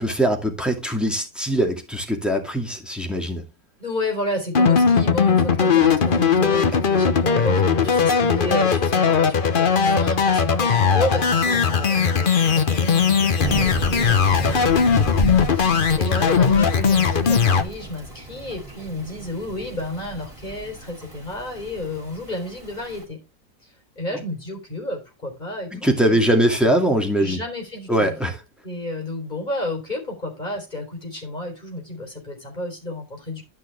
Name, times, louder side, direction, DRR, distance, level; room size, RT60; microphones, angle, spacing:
voice 1, 0.0-3.4 24.1-24.2 25.7-27.4 27.9-28.4, right 1 dB, ahead, 2.2 m, -21 dB
voice 2, 3.8-14.6 15.0-23.2 23.6-26.3 27.2-28.1 28.6-33.4, left 1 dB, 25° left, 4.2 m, -31 dB
sound 1, 4.5-17.6, left 6 dB, 40° left, 0.8 m, -19 dB
Thunder / Rain, 13.4-23.0, right 1 dB, 20° right, 4.0 m, -33 dB
12.5 x 5.9 x 3.4 m
omnidirectional pair, 1.9 m